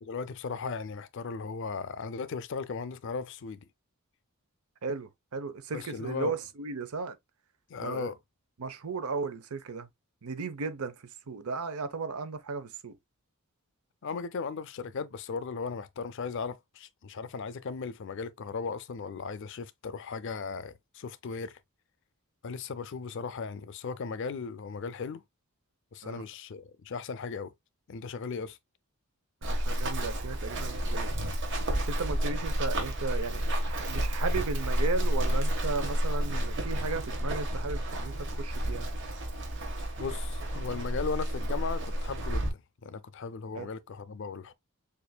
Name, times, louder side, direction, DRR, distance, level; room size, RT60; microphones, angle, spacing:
voice 1, 0.0-3.7 5.7-6.3 7.7-8.2 14.0-21.6 22.4-25.2 25.9-27.5 27.9-28.6 40.0-44.5, left 5 dB, 55° left, 0.4 m, -37 dB
voice 2, 4.8-7.2 7.8-8.1 8.6-9.9 10.2-11.0 11.3-12.9 26.0-26.2 29.4-31.1 31.8-38.9 43.6-43.7, right 4 dB, 85° right, 0.7 m, -35 dB
Run, 29.4-42.5, right 1 dB, 55° right, 1.3 m, -31 dB
6.7 x 2.6 x 2.2 m
head